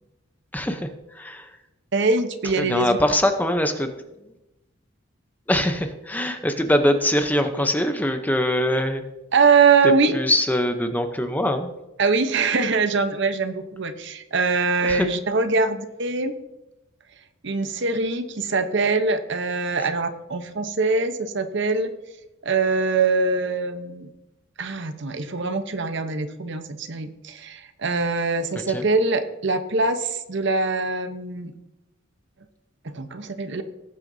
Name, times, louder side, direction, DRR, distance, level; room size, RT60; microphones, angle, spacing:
voice 1, 1.9-3.0 9.3-10.1 12.0-16.3 17.4-21.9 22.4-24.1 24.6-31.5 32.8-33.6, right 4 dB, 55° right, 9 dB, 0.9 m, -23 dB
voice 2, 2.6-3.9 5.5-9.0 10.1-11.7 14.9-15.1 28.7-28.8, left 1 dB, 10° left, 6 dB, 0.7 m, -22 dB
18.5 x 8.9 x 2.7 m, 0.96 s
head